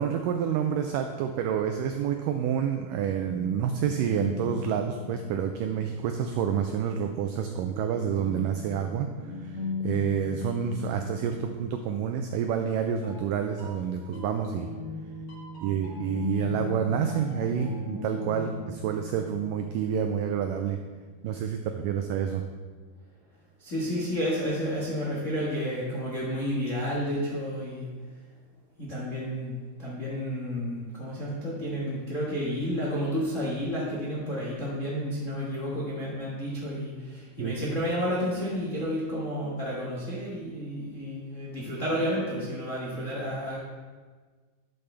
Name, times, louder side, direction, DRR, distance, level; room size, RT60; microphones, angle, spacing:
voice 1, 0.0-9.1 9.4-14.7 15.6-20.8 21.2-22.4 37.4-37.5, right 8 dB, 85° right, 5 dB, 1.9 m, -28 dB
sound 1, 3.2-6.3 7.6-12.2 13.0-20.7, left 4 dB, 45° left, 2.1 m, -39 dB
voice 2, 23.6-27.9 28.8-43.6, equal, 65° left, -6 dB, 0.7 m, -31 dB
12.5 x 6.9 x 3.4 m, 1.5 s
omnidirectional pair, 4.4 m